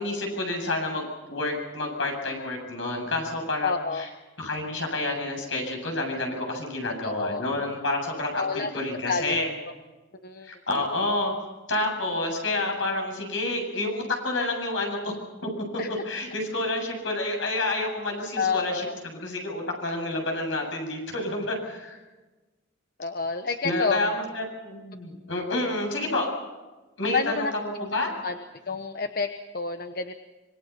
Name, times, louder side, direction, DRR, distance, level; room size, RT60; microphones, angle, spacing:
voice 1, 0.0-4.1 4.4-9.5 10.4-11.3 11.7-15.1 15.7-22.0 23.6-26.3 27.0-27.5 27.8-28.1, left 2 dB, 70° left, 1 dB, 7.9 m, -29 dB
voice 2, 3.6-4.1 7.0-7.4 8.4-8.7 9.1-9.4 10.2-10.5 15.8-15.9 18.4-18.9 23.0-24.0 27.1-27.5 28.2-28.4 28.7-30.1, left 4 dB, 50° left, 8 dB, 1.0 m, -28 dB
26.0 x 23.0 x 5.8 m, 1.2 s
head